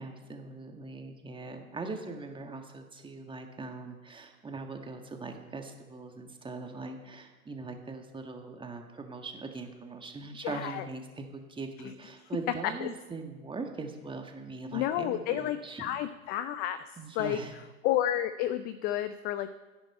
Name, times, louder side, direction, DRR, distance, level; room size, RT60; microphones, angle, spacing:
voice 1, 0.0-16.0 17.0-17.6, right 3 dB, 10° right, 4 dB, 1.7 m, -41 dB
voice 2, 10.4-10.8 12.8-12.9 14.7-16.8 17.1-17.4 17.8-19.5, left 12 dB, 20° left, 13 dB, 0.4 m, -31 dB
17.5 x 10.5 x 4.4 m, 1.2 s
figure-of-eight pair, 100°, 44 cm